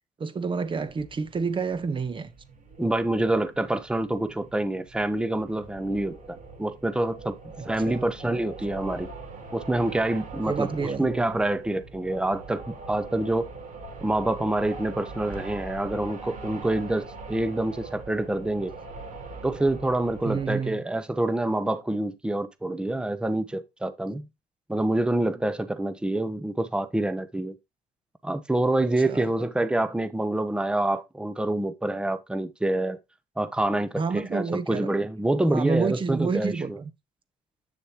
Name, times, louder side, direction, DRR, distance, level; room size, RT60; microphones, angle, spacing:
voice 1, 0.2-2.3 7.6-8.3 10.5-11.1 20.2-20.8 29.1-29.2 34.0-34.9 35.5-36.9, right 5 dB, 30° right, 1.0 m, -29 dB
sound 1, 0.6-20.5, right 3 dB, 55° right, 4.0 m, -42 dB
voice 2, 2.8-7.4 7.7-9.1 9.5-13.5 14.0-18.7 19.4-24.3 24.7-27.5 28.2-33.0 33.4-36.5, right 1 dB, 5° right, 0.8 m, -27 dB
8.3 x 6.8 x 2.9 m
cardioid pair, 110°, 17 cm